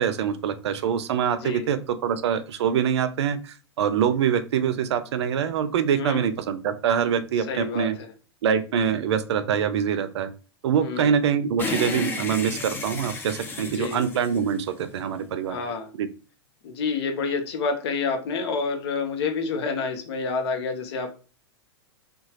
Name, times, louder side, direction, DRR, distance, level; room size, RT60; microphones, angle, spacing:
voice 1, 0.0-8.0 8.4-10.3 10.6-15.6 16.0-16.1, right 8 dB, 75° right, 12 dB, 0.4 m, -24 dB
voice 2, 5.9-6.3 7.5-7.9 10.8-11.2 13.6-14.0 15.5-15.9 16.6-21.1, left 4 dB, 65° left, 5 dB, 0.8 m, -28 dB
sound 1, 11.6-15.1, left 3 dB, 15° left, 0.4 m, -32 dB
2.8 x 2.3 x 2.8 m, 0.35 s
hypercardioid pair, 120°, 14 cm